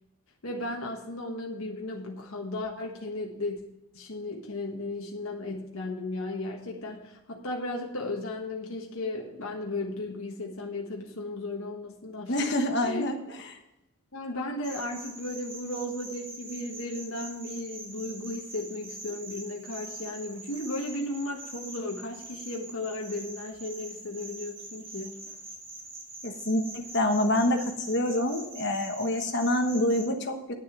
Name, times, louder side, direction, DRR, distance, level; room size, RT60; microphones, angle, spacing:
voice 1, 0.4-3.6 3.9-12.4 12.8-13.1 14.1-25.2, left 2 dB, 70° left, 0 dB, 1.4 m, -35 dB
voice 2, 12.3-13.2 26.2-30.5, left 1 dB, 50° left, 4 dB, 1.3 m, -26 dB
sound 1, 14.6-30.0, right 2 dB, 40° right, 3.7 m, -44 dB
9.8 x 7.0 x 6.1 m, 0.90 s
head